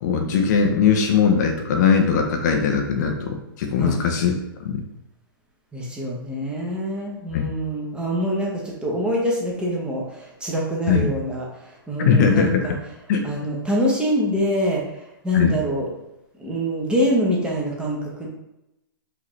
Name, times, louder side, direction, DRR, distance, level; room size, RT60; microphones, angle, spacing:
voice 1, 0.0-4.3 4.6-4.8 7.3-7.5 10.9-11.1 12.0-12.7 13.1-13.3 15.3-15.6, left 6 dB, 50° left, 3 dB, 0.7 m, -20 dB
voice 2, 5.7-13.0 13.2-15.9 16.4-18.3, equal, 10° right, -3 dB, 0.9 m, -25 dB
4.9 x 2.8 x 3.2 m, 0.90 s
hypercardioid pair, 125°, 12 cm